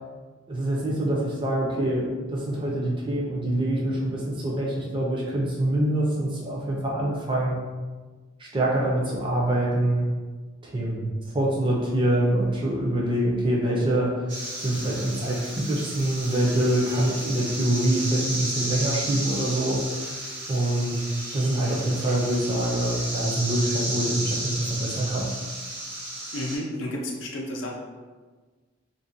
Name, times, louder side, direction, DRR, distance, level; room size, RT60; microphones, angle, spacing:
voice 1, 0.5-7.6 8.4-10.1 10.6-11.1 11.3-14.1 14.6-20.1 20.5-21.0 21.3-25.3, right 1 dB, 25° right, -3 dB, 0.5 m, -25 dB
sound 1, 14.3-26.6, right 1 dB, 65° right, 0.9 m, -33 dB
voice 2, 26.3-27.7, left 1 dB, 80° left, -1 dB, 0.5 m, -31 dB
2.5 x 2.1 x 2.6 m, 1.4 s
head